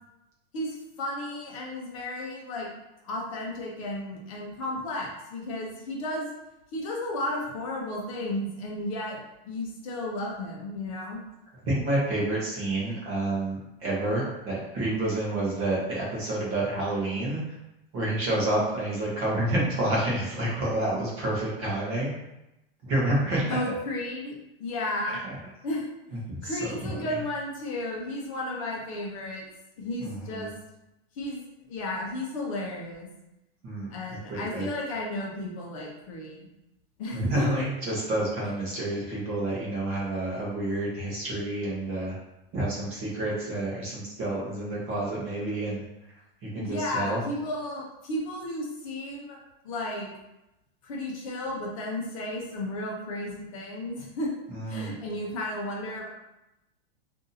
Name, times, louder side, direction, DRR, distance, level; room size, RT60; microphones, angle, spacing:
voice 1, 0.5-2.7 3.0-6.3 6.7-9.2 9.4-11.2 23.5-25.2 25.6-25.8 26.4-29.4 29.8-30.5 31.1-31.4 31.7-33.1 33.9-36.4 37.0-37.5 46.6-49.4 49.6-50.1 50.8-54.3 54.7-56.1, left 1 dB, 35° left, -2 dB, 0.7 m, -33 dB
voice 2, 11.6-17.4 17.9-22.1 22.8-23.6 26.3-26.6 30.0-30.5 33.6-33.9 34.3-34.7 37.1-42.1 42.5-45.8 46.4-47.2 54.5-54.9, right 1 dB, 20° right, -6 dB, 0.8 m, -29 dB
2.6 x 2.6 x 3.9 m, 0.92 s
supercardioid pair, 175°, 31 cm